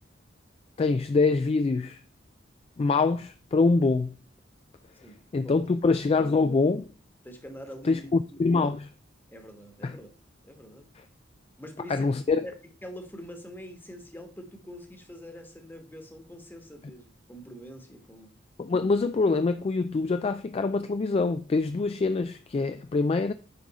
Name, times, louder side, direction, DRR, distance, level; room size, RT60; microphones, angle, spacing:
voice 1, 0.8-2.0 2.8-4.2 5.3-6.9 7.8-8.8 9.8-10.0 10.9-11.0 11.9-12.5 18.6-23.3, left 3 dB, 30° left, 0.3 m, -25 dB
voice 2, 5.0-5.6 7.2-8.7 9.3-10.1 10.4-10.9 11.6-12.1 12.4-12.6 12.8-18.4, equal, 10° left, 1.2 m, -45 dB
9.5 x 3.9 x 4.1 m
head